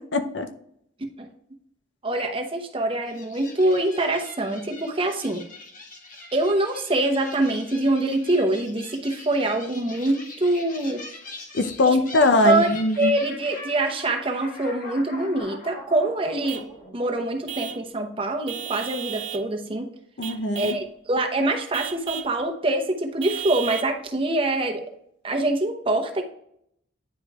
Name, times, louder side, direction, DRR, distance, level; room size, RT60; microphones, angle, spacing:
voice 1, 0.1-0.5 11.5-13.1 20.2-20.8, left 2 dB, 70° left, 8 dB, 0.7 m, -21 dB
voice 2, 2.0-5.4 6.3-11.0 11.8-12.0 12.4-12.7 13.0-16.6 16.9-19.9 20.6-24.8 25.2-26.2, right 2 dB, 30° right, 4 dB, 0.8 m, -24 dB
sound 1, 3.1-17.7, left 2 dB, 45° left, 1.3 m, -43 dB
Vehicle horn car horn honking / Truck, 16.5-16.7 17.5-17.9 18.5-19.5 20.2-20.9 21.7-22.4 23.2-23.9, right 10 dB, 80° right, 0.7 m, -34 dB
9.7 x 5.1 x 2.4 m, 0.72 s
head